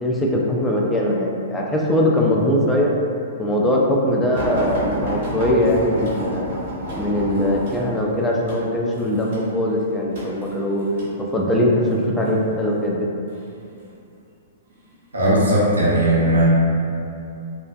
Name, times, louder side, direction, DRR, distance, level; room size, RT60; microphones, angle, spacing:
voice 1, 0.0-2.9 3.4-6.5 7.0-10.9 11.3-13.0, left 1 dB, 10° left, -3 dB, 0.4 m, -21 dB
sound 1, 4.3-11.2 11.9-12.3 13.3-13.9 14.7-14.9 15.2-15.3, equal, 60° right, 1.0 m, -30 dB
voice 2, 15.1-16.4, right 1 dB, 85° right, -7 dB, 0.7 m, -17 dB
2.6 x 2.1 x 2.3 m, 2.6 s
hypercardioid pair, 115°, 0 cm